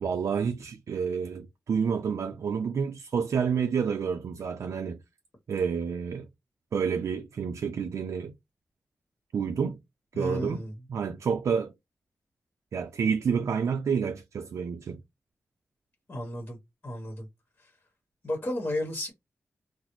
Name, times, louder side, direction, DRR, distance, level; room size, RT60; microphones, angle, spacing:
voice 1, 0.0-5.0 5.5-6.3 6.7-8.3 9.3-9.8 10.2-10.6 10.9-11.7 12.7-15.0, right 6 dB, 80° right, 0.4 m, -29 dB
voice 2, 10.1-10.7 16.1-16.6 16.8-17.3 18.2-19.1, left 1 dB, 35° left, 1.2 m, -33 dB
3.9 x 2.0 x 3.0 m
wide cardioid pair, 150°, 5 cm